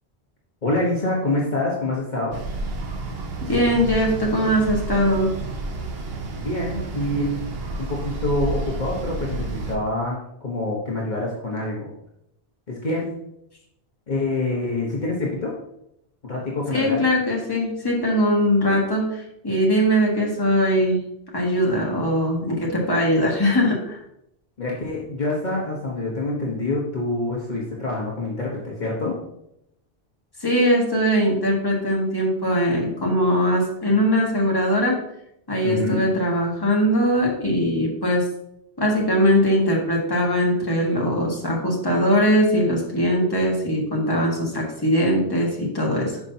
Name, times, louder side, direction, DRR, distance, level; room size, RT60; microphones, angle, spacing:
voice 1, 0.6-2.4 6.3-7.4 7.8-11.9 12.7-13.1 14.1-15.5 16.2-17.1 24.6-29.2 35.6-36.1, left 2 dB, 45° left, -4 dB, 1.4 m, -26 dB
sound 1, 2.3-9.8, right 2 dB, 70° right, 1.2 m, -30 dB
voice 2, 3.5-5.3 16.7-21.0 21.3-24.0 30.4-35.0 35.5-38.2 38.8-46.2, equal, 20° left, -2 dB, 1.7 m, -21 dB
9.7 x 6.0 x 2.8 m, 0.80 s
omnidirectional pair, 1.1 m